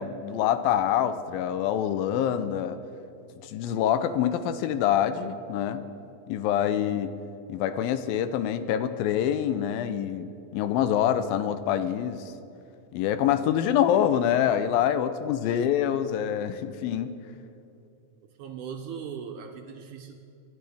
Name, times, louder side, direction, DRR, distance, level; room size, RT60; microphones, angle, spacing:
voice 1, 0.0-2.8 3.4-5.8 6.3-7.1 7.5-12.2 12.9-17.1, left 10 dB, 85° left, 11 dB, 2.5 m, -26 dB
voice 2, 15.4-15.7 18.4-20.1, right 7 dB, 75° right, 4 dB, 1.9 m, -39 dB
28.0 x 12.5 x 3.5 m, 2.6 s
omnidirectional pair, 4.1 m